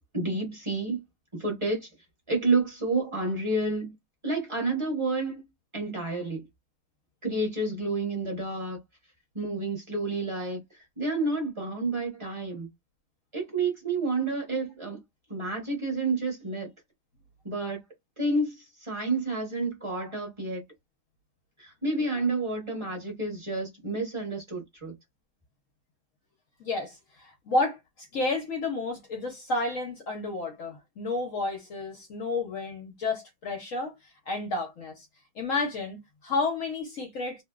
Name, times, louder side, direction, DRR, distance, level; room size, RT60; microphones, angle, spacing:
voice 1, 0.1-1.0 1.3-1.8 2.3-3.9 4.2-5.4 5.7-6.5 7.2-8.8 9.3-10.6 11.0-12.7 13.3-15.0 15.3-16.7 17.4-17.8 18.2-20.6 21.6-24.9, right 3 dB, 20° right, 0.9 m, -29 dB
voice 2, 26.6-27.8 28.1-34.0 34.3-35.1 35.4-37.4, left 3 dB, 65° left, 0.8 m, -31 dB
2.9 x 2.6 x 2.3 m
omnidirectional pair, 2.1 m